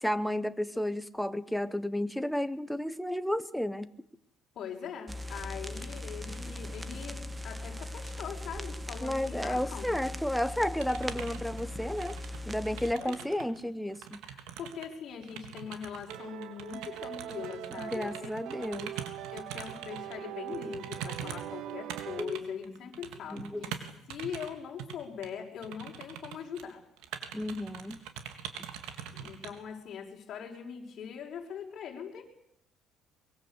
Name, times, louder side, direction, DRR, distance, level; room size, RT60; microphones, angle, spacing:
voice 1, 0.0-3.9 9.0-12.2 12.5-14.2 17.8-18.9 22.2-22.4 22.7-22.8 23.3-23.6 27.3-28.0, left 1 dB, ahead, 13 dB, 1.2 m, -32 dB
voice 2, 4.6-10.1 13.0-13.2 14.3-18.7 19.3-23.8 24.1-26.8 29.1-32.2, left 7 dB, 50° left, 0 dB, 5.6 m, -41 dB
sound 1, 5.1-12.9, left 1 dB, 15° right, 1.7 m, -39 dB
sound 2, 10.8-13.6 13.9-20.2 20.5-24.5 24.8-25.0 25.2-25.3 25.6-26.7 27.0-29.5, right 9 dB, 90° right, 3.5 m, -43 dB
sound 3, 16.1-22.3, right 13 dB, 70° right, 0.9 m, -42 dB
24.0 x 22.5 x 8.3 m, 0.73 s
cardioid pair, 130°, 0 cm